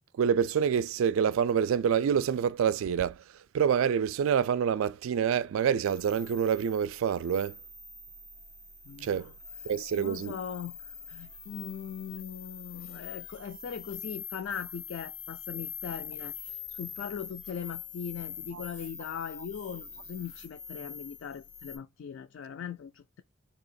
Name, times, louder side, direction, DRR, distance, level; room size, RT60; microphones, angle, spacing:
voice 1, 0.2-3.2 3.5-7.6 9.0-9.3 9.7-10.4 18.5-18.6, right 7 dB, 85° right, 0.3 m, -27 dB
sound 1, 5.8-21.8, left 7 dB, 85° left, 0.9 m, -44 dB
voice 2, 8.9-9.3 10.0-23.2, left 7 dB, 70° left, 0.3 m, -40 dB
3.8 x 2.8 x 2.5 m
head